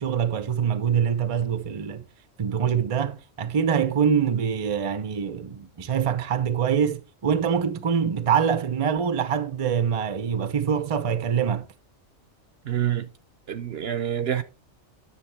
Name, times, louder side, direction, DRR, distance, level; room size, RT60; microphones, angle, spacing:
voice 1, 0.0-2.0 2.4-11.7, right 7 dB, 35° right, 0.6 m, -24 dB
voice 2, 12.7-13.1 13.5-14.4, right 10 dB, 65° right, 0.8 m, -27 dB
9.9 x 6.6 x 3.3 m
omnidirectional pair, 1.2 m